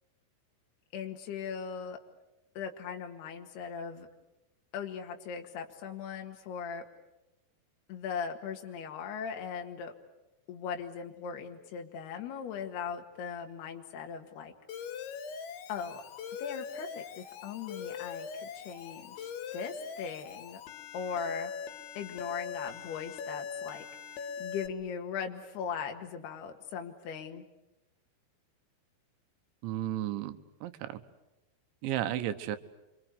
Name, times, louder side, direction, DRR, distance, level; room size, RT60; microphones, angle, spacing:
voice 1, 0.9-2.0 2.6-4.1 4.7-6.9 7.9-9.9 10.5-14.5 15.7-16.0 16.4-20.6 20.9-21.5 22.0-23.9 24.4-27.4, left 6 dB, 65° left, 3 dB, 3.6 m, -39 dB
Alarm, 14.7-24.7, left 6 dB, 85° left, 4.1 m, -41 dB
voice 2, 29.6-31.0 31.8-32.6, right 12 dB, 85° right, 10 dB, 3.5 m, -34 dB
29.0 x 25.0 x 8.3 m, 0.95 s
omnidirectional pair, 5.1 m